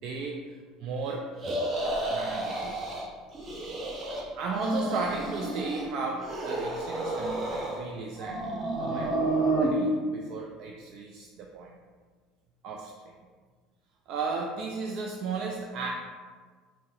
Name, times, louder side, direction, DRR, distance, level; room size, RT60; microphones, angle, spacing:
voice 1, 0.0-1.3 2.1-2.7 4.4-8.4 8.8-11.8 12.6-13.1 14.1-15.9, right 4 dB, 60° right, 0 dB, 0.3 m, -35 dB
sound 1, 1.4-3.1 3.3-4.2 4.5-5.9 6.2-7.8 8.2-9.7, right 2 dB, 35° right, 0.8 m, -30 dB
3.5 x 2.0 x 4.1 m, 1.5 s
hypercardioid pair, 80°, 0 cm